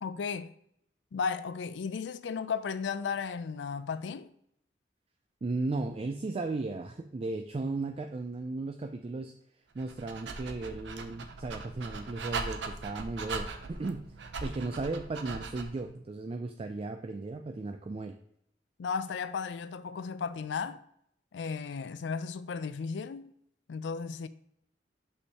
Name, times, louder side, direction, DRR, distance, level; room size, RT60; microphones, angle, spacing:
voice 1, 0.0-0.5 1.1-4.3 18.8-20.8 21.3-23.3 23.7-24.3, left 5 dB, 80° left, 0.4 m, -35 dB
voice 2, 5.4-9.3 9.7-18.1, right 3 dB, 35° right, 0.3 m, -36 dB
Dog, 9.7-15.8, right 4 dB, 75° right, 0.7 m, -40 dB
6.3 x 5.5 x 2.8 m
head